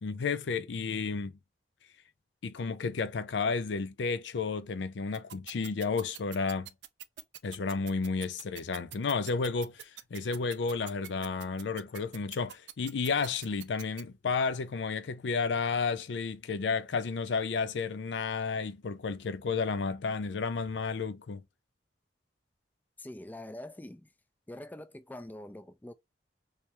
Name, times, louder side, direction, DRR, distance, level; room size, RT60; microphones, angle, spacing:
voice 1, 0.0-1.3 2.4-6.7 7.4-21.4, left 4 dB, 85° left, 0.5 m, -32 dB
sound 1, 5.1-14.0, right 13 dB, 75° right, 0.4 m, -44 dB
voice 2, 23.0-24.1 24.5-25.9, left 1 dB, 10° left, 0.4 m, -44 dB
3.3 x 3.2 x 2.9 m
head